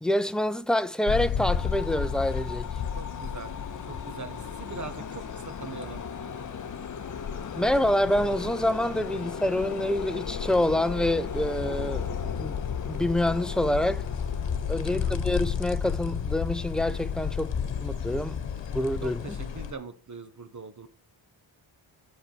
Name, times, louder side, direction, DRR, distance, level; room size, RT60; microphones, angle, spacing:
voice 1, 0.0-2.7 7.6-12.6 12.9-14.0 14.7-17.5 17.8-18.4 18.7-19.2, left 1 dB, ahead, 0.5 m, -27 dB
sound 1, 1.1-19.7, left 7 dB, 70° left, 1.1 m, -33 dB
sound 2, 1.4-19.1, left 6 dB, 40° left, 0.7 m, -40 dB
voice 2, 2.9-3.5 3.8-6.0 14.9-15.2 19.0-20.9, right 4 dB, 40° right, 1.3 m, -41 dB
8.0 x 6.0 x 6.0 m
wide cardioid pair, 115°, 45 cm